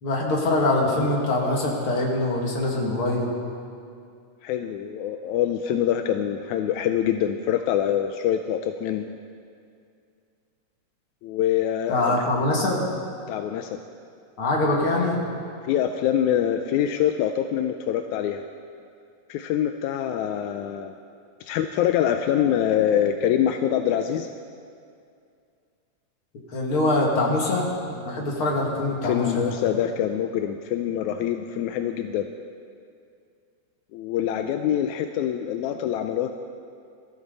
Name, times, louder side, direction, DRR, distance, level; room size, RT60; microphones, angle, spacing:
voice 1, 0.0-3.3 11.9-12.8 14.4-15.2 26.5-29.5, left 2 dB, 40° left, -2 dB, 3.0 m, -23 dB
voice 2, 4.4-9.1 11.2-12.3 13.3-13.8 15.6-18.4 19.3-21.0 21.4-24.3 29.0-32.3 33.9-36.3, left 10 dB, 80° left, 6 dB, 1.7 m, -25 dB
24.0 x 14.5 x 4.1 m, 2.4 s
omnidirectional pair, 3.9 m